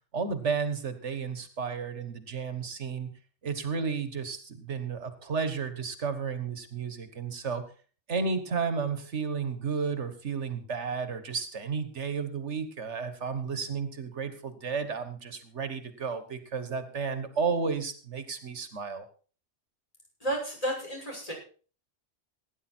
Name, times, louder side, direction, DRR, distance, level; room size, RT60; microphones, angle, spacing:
voice 1, 0.1-3.1 3.4-7.6 8.1-19.1, right 5 dB, 85° right, 10 dB, 1.8 m, -32 dB
voice 2, 20.2-21.3, right 1 dB, 30° left, -1 dB, 6.7 m, -32 dB
17.0 x 10.0 x 4.5 m, 0.39 s
omnidirectional pair, 1.2 m